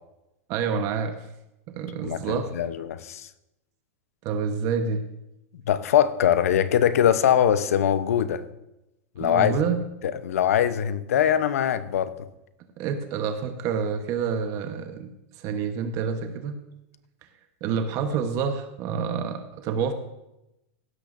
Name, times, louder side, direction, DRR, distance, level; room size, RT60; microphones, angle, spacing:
voice 1, 0.5-1.3 1.7-2.5 4.2-5.0 9.2-9.8 12.8-15.1 15.4-16.6 17.6-19.9, right 6 dB, 45° right, 6 dB, 1.1 m, -28 dB
voice 2, 2.0-3.3 5.7-8.4 9.2-9.5 10.0-12.1, left 9 dB, 85° left, 13 dB, 0.8 m, -22 dB
16.5 x 12.0 x 2.6 m, 0.91 s
supercardioid pair, 130°, 8 cm